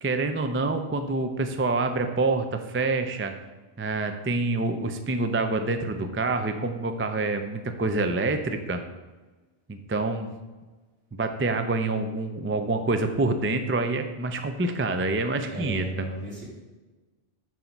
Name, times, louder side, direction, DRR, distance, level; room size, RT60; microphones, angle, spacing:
voice 1, 0.0-3.3 3.8-8.8 9.7-10.3 11.1-16.1, right 3 dB, 20° right, 7 dB, 0.4 m, -27 dB
voice 2, 15.4-16.4, right 2 dB, 65° right, -5 dB, 2.9 m, -35 dB
9.3 x 4.1 x 5.9 m, 1.3 s
omnidirectional pair, 1.1 m